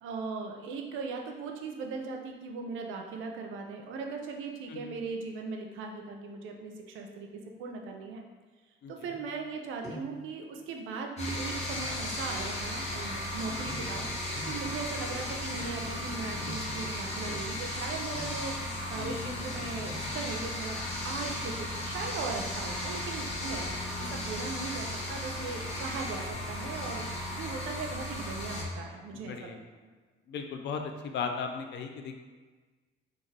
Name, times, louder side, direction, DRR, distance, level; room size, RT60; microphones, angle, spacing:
voice 1, 0.0-7.3 7.6-8.2 8.9-14.1 14.5-27.0 27.3-29.5, right 4 dB, 80° right, 2 dB, 0.4 m, -39 dB
sound 1, 9.1-9.5 9.8-10.2 11.7-11.9 13.6-18.6 19.6-20.0, right 1 dB, 15° left, 1.2 m, -46 dB
sound 2, 11.2-28.6, left 1 dB, 35° left, 0.7 m, -35 dB
voice 2, 19.0-19.4 24.0-24.1 29.3-29.6 30.3-32.2, left 5 dB, 65° left, 4 dB, 0.4 m, -37 dB
2.5 x 2.3 x 3.2 m, 1.4 s
cardioid pair, 90°, 20 cm